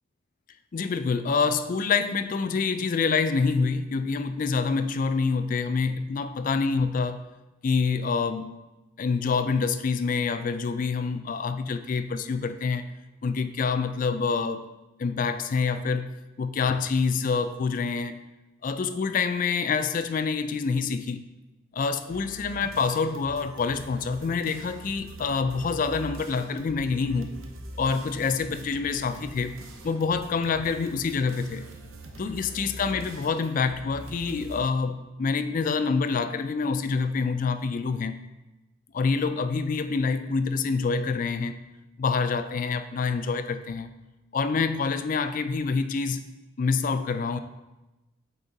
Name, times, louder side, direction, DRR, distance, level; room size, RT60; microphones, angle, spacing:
voice 1, 0.7-7.2 7.6-8.5 9.0-12.9 13.2-14.7 15.0-16.1 16.4-18.2 18.6-21.2 21.7-27.3 27.8-29.6 29.8-31.7 32.2-38.2 38.9-41.5 42.0-43.9 44.3-46.3 46.6-47.4, left 5 dB, 40° left, 10 dB, 0.3 m, -26 dB
sound 1, 22.1-34.6, right 1 dB, 90° right, 0.8 m, -43 dB
8.5 x 3.6 x 4.0 m, 1.0 s
head